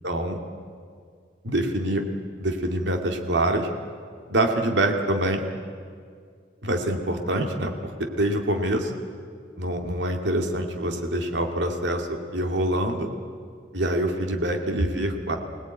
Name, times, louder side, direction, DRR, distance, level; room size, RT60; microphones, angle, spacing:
voice 1, 0.0-0.4 1.4-2.0 2.4-3.7 4.3-5.4 6.6-8.9 9.6-13.1 13.7-15.4, right 1 dB, 85° right, 3 dB, 2.2 m, -25 dB
25.0 x 18.5 x 9.1 m, 2.1 s
head